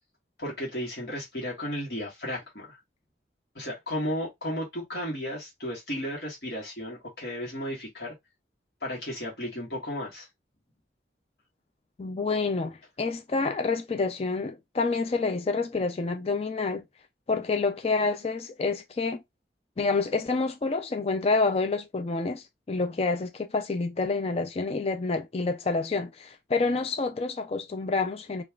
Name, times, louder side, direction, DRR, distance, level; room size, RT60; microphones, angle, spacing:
voice 1, 0.4-2.8 3.5-8.1 8.8-10.3, equal, 60° left, 1.4 m, -34 dB
voice 2, 12.0-16.8 17.3-19.2 19.8-28.4, left 3 dB, 35° left, 0.4 m, -28 dB
5.1 x 2.4 x 2.3 m
head